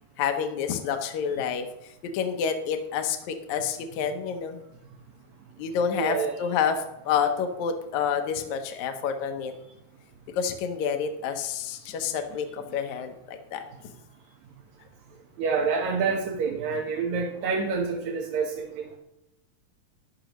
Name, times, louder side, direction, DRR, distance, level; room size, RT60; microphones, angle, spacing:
voice 1, 0.2-1.7 2.1-4.6 5.6-9.5 10.3-13.6, left 7 dB, 75° left, 6 dB, 2.2 m, -28 dB
voice 2, 6.0-6.4 15.4-19.0, right 5 dB, 70° right, 0 dB, 2.4 m, -27 dB
14.0 x 10.0 x 3.0 m, 0.89 s
omnidirectional pair, 3.5 m